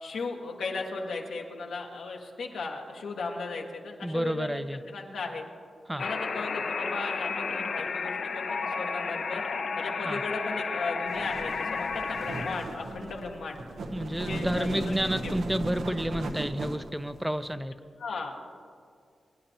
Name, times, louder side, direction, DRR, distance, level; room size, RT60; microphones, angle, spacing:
voice 1, 0.0-4.6 4.9-5.4 5.9-9.4 9.7-13.6 14.2-14.9 15.2-15.4 18.0-18.4, left 3 dB, 90° left, 0 dB, 1.5 m, -36 dB
voice 2, 4.0-4.8 5.9-6.0 10.0-10.2 13.9-17.7, equal, 5° right, 10 dB, 0.5 m, -30 dB
sound 1, 6.0-12.6, left 5 dB, 65° left, 0.6 m, -32 dB
sound 2, 11.1-17.5, right 2 dB, 90° right, 0.9 m, -37 dB
22.5 x 10.0 x 2.9 m, 2.2 s
cardioid pair, 70°, 0 cm